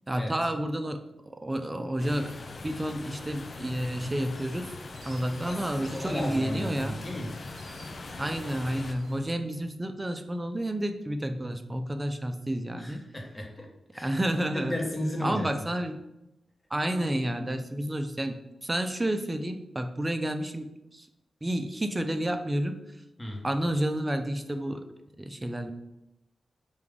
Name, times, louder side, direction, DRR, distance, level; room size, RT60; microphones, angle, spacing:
voice 1, 0.1-2.3 2.6-4.7 5.1-7.0 8.2-13.0 14.0-14.8 15.2-16.0 16.7-21.1 21.4-22.8 23.4-24.8 25.2-25.7, right 1 dB, 20° right, 8 dB, 0.4 m, -30 dB
sound 1, 2.0-8.9, left 3 dB, 50° left, 0.4 m, -41 dB
sound 2, 4.2-9.2, right 2 dB, 70° right, 0.8 m, -51 dB
voice 2, 5.5-7.3 12.8-13.7 13.9-14.2 14.5-15.5 23.2-23.4, left 1 dB, 15° left, 1 dB, 0.9 m, -34 dB
5.0 x 2.3 x 3.5 m, 0.89 s
cardioid pair, 75°, 0 cm